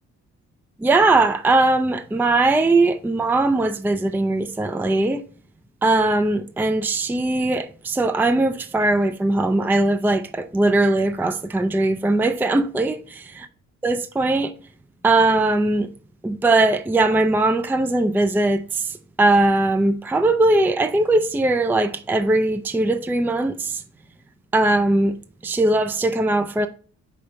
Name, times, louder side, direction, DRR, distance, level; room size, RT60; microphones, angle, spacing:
voice 1, 0.8-5.2 5.8-13.2 13.8-14.5 15.0-15.9 16.2-23.8 24.5-25.1 25.4-26.7, right 2 dB, 5° right, 0.4 m, -20 dB
5.1 x 4.2 x 5.7 m
cardioid pair, 90°, 30 cm